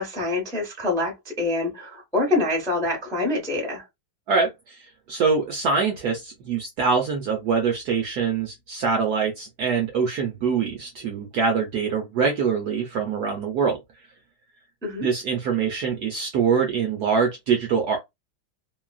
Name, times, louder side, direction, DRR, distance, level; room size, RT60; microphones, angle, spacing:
voice 1, 0.0-3.8 14.8-15.1, left 2 dB, 5° left, 0.6 m, -26 dB
voice 2, 4.3-4.8 5.1-13.8 15.0-18.0, right 5 dB, 70° right, 1.0 m, -24 dB
3.1 x 2.3 x 2.3 m
omnidirectional pair, 2.2 m